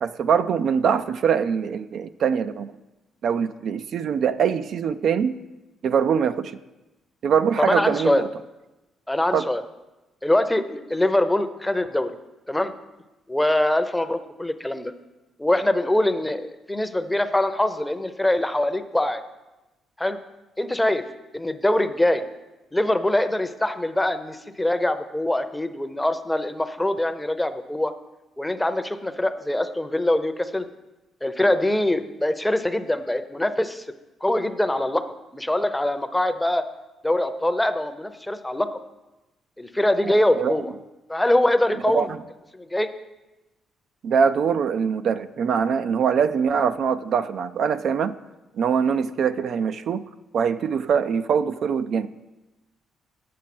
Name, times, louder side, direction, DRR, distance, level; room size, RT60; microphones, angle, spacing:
voice 1, 0.0-2.7 3.2-5.3 5.8-6.5 7.2-8.3 9.3-9.5 40.0-40.5 41.9-42.2 44.0-48.1 48.6-50.0 50.3-52.1, right 7 dB, 65° right, 11 dB, 0.4 m, -23 dB
voice 2, 7.6-8.2 9.1-9.6 10.2-12.1 12.5-12.7 13.3-14.9 15.4-19.2 20.0-20.2 20.6-21.0 21.3-22.2 22.7-27.9 28.4-30.6 31.2-33.8 34.2-35.0 35.3-36.7 37.0-38.8 39.6-40.7 41.1-42.1 42.5-42.9, left 1 dB, 10° left, 10 dB, 0.6 m, -23 dB
8.5 x 6.3 x 6.0 m, 1.0 s
cardioid pair, 90°, 0 cm